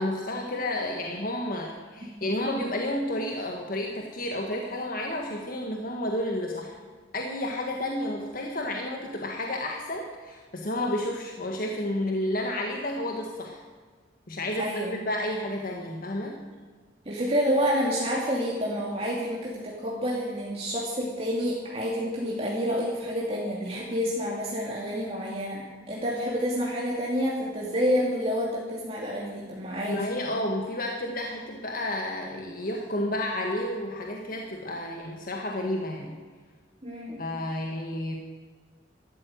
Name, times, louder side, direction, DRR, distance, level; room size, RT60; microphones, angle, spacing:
voice 1, 0.0-6.8 7.1-13.6 14.3-14.7 15.1-16.4 29.9-36.2 37.2-38.2, left 1 dB, 50° left, 1 dB, 1.6 m, -31 dB
voice 2, 14.6-14.9 17.1-30.0 36.8-37.2, equal, 35° right, -4 dB, 2.6 m, -28 dB
13.5 x 13.0 x 8.0 m, 1.5 s
head